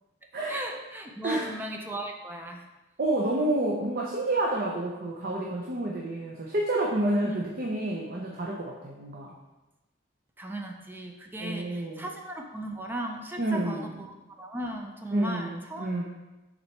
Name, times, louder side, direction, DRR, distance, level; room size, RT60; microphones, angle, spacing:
voice 1, 0.5-2.7 7.2-7.5 10.4-15.9, right 1 dB, 10° right, 3 dB, 0.5 m, -37 dB
voice 2, 3.0-9.3 11.4-12.1 13.4-14.0 15.1-16.0, right 1 dB, 50° right, -2 dB, 0.7 m, -29 dB
7.1 x 4.1 x 3.2 m, 1.1 s
head